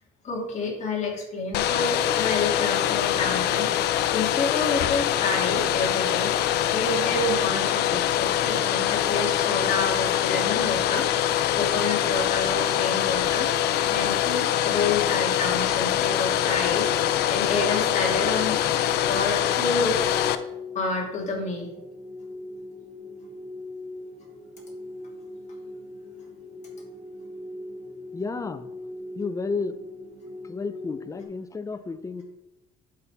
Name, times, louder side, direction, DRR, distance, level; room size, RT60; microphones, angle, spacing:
voice 1, 0.2-3.7 4.1-6.4 6.7-11.1 11.5-13.5 13.9-16.9 17.3-18.6 19.1-20.2 20.7-21.7, left 3 dB, 45° left, -1 dB, 2.8 m, -29 dB
Domestic sounds home sounds, 1.5-20.4, left 11 dB, 80° left, 0.6 m, -24 dB
sound 1, 15.9-31.2, left 2 dB, 35° right, 1.7 m, -40 dB
voice 2, 28.1-28.7 29.1-29.8 30.4-32.2, left 4 dB, 20° left, 12 dB, 0.6 m, -32 dB
11.0 x 5.5 x 3.6 m, 0.96 s
cardioid pair, 110°, 17 cm